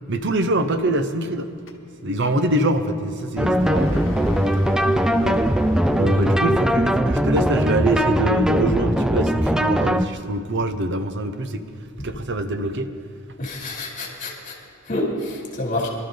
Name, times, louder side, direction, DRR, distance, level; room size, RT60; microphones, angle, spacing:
voice 1, 0.1-1.5 2.0-4.1 5.2-5.4 6.0-11.6 12.0-12.9, right 1 dB, 55° right, 9 dB, 0.9 m, -24 dB
sound 1, 1.7-7.3, left 1 dB, 60° left, 1.2 m, -37 dB
sound 2, 3.4-10.1, equal, 5° right, 0.3 m, -20 dB
voice 2, 13.4-14.6 14.8-15.9, left 1 dB, 40° left, -1 dB, 2.9 m, -28 dB
24.5 x 12.5 x 3.9 m, 2.6 s
head